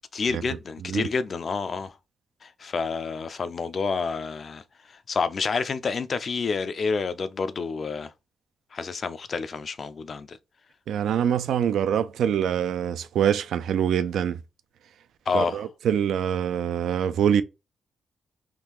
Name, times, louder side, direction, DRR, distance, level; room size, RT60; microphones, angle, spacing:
voice 1, 0.1-1.9 2.4-4.6 5.1-8.1 8.7-10.4 15.3-15.7, left 5 dB, 50° left, 0.4 m, -29 dB
voice 2, 10.9-14.4 15.3-17.4, right 9 dB, 85° right, 0.3 m, -24 dB
3.6 x 2.3 x 2.9 m
cardioid pair, 100°, 0 cm